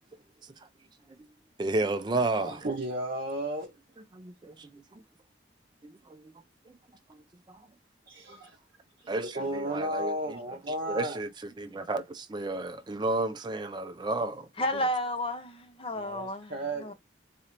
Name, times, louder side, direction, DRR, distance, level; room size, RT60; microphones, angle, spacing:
voice 1, 1.6-2.6 4.1-4.8 5.8-6.3 6.7-6.8 7.1-7.2 7.5-7.6 9.1-10.4 10.9-11.3 11.6-14.5, right 2 dB, 20° right, 0.3 m, -32 dB
voice 2, 2.4-3.7 8.1-8.5 9.1-11.2 15.9-16.9, right 1 dB, 45° right, 0.7 m, -34 dB
voice 3, 14.6-16.5 16.8-16.9, left 1 dB, 30° left, 0.5 m, -31 dB
4.1 x 2.5 x 2.9 m
head